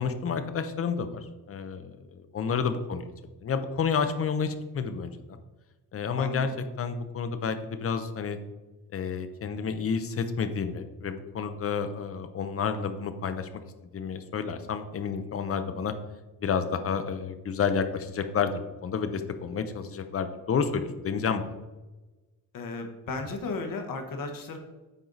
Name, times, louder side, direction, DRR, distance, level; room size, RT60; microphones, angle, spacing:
voice 1, 0.0-3.1 3.4-5.1 5.9-6.5 6.8-8.4 8.9-13.5 13.9-15.9 16.4-21.4, left 6 dB, 40° left, 9 dB, 0.7 m, -30 dB
voice 2, 22.5-24.6, left 3 dB, 60° left, 5 dB, 1.3 m, -35 dB
9.1 x 4.5 x 4.0 m, 1.1 s
cardioid pair, 150°, 37 cm